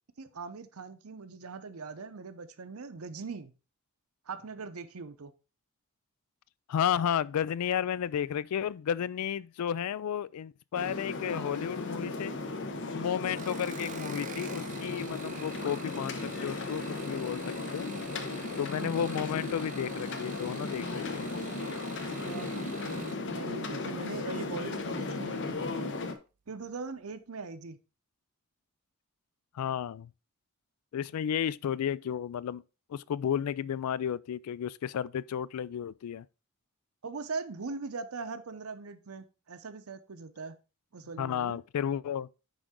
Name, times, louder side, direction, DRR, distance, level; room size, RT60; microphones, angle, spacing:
voice 1, 0.2-3.5 4.3-5.3 18.8-19.1 22.2-22.5 22.8-26.0 26.5-27.8 37.0-40.6 40.9-41.6, right 4 dB, 75° right, 0.7 m, -41 dB
voice 2, 6.7-12.3 12.9-17.4 17.7-17.9 18.6-21.3 29.5-30.1 30.9-32.6 32.9-36.3 41.2-42.3, left 8 dB, 85° left, 0.3 m, -32 dB
sound 1, 10.7-26.1, left 3 dB, 55° left, 0.8 m, -36 dB
sound 2, 13.3-23.2 24.4-24.9 25.3-25.7 26.0-26.1, right 9 dB, 35° right, 0.3 m, -48 dB
9.9 x 3.8 x 3.7 m
head